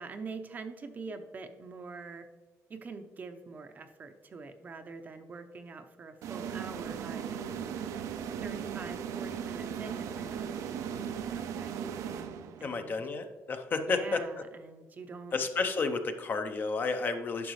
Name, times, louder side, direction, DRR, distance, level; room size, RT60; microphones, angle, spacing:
voice 1, 0.0-2.3 2.7-7.4 8.4-11.0 11.3-11.9 12.6-13.0 13.9-15.4, right 4 dB, 30° right, 7 dB, 0.6 m, -44 dB
sound 1, 6.2-12.8, right 8 dB, 80° right, 0.6 m, -37 dB
voice 2, 12.6-14.2 15.3-17.5, left 4 dB, 35° left, 7 dB, 0.7 m, -31 dB
10.5 x 5.9 x 3.2 m, 1.2 s
cardioid pair, 145°, 5 cm